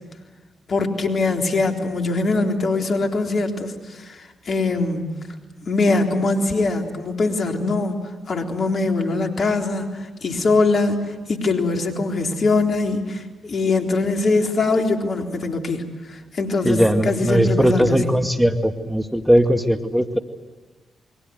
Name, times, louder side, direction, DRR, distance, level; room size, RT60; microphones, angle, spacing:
voice 1, 0.7-5.1 5.7-8.0 8.3-11.0 11.3-18.0, left 3 dB, 55° left, 3 dB, 3.8 m, -22 dB
voice 2, 16.6-20.2, equal, 5° right, 7 dB, 2.1 m, -19 dB
28.5 x 23.0 x 8.0 m, 1.2 s
hypercardioid pair, 40°, 0 cm